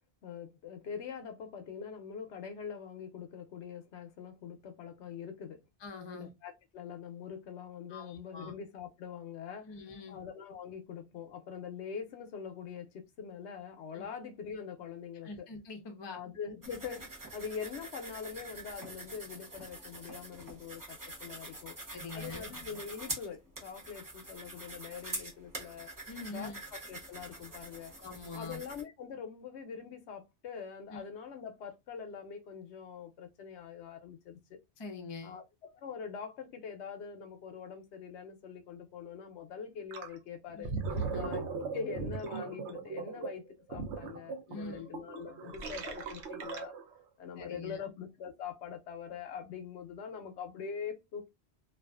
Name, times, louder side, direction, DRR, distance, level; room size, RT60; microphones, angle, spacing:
voice 1, 0.2-5.6 6.1-9.7 10.1-15.5 16.1-17.1 17.3-21.8 22.1-25.9 26.3-27.9 28.3-34.6 35.2-40.7 41.2-43.4 43.7-46.7 47.2-51.3, left 7 dB, 90° left, 0.9 m, -43 dB
voice 2, 5.8-6.3 7.9-8.5 9.7-10.2 13.9-14.1 15.2-16.2 21.9-22.5 26.1-26.6 28.0-28.6 30.9-31.0 34.8-35.4 40.5-41.3 44.5-44.9 47.4-47.9, left 3 dB, 35° left, 0.5 m, -44 dB
sound 1, 16.6-28.8, right 2 dB, 20° right, 0.7 m, -45 dB
Gurgling, 39.9-40.1 40.5-47.0, right 4 dB, 85° right, 0.9 m, -38 dB
2.4 x 2.4 x 2.3 m
omnidirectional pair, 1.1 m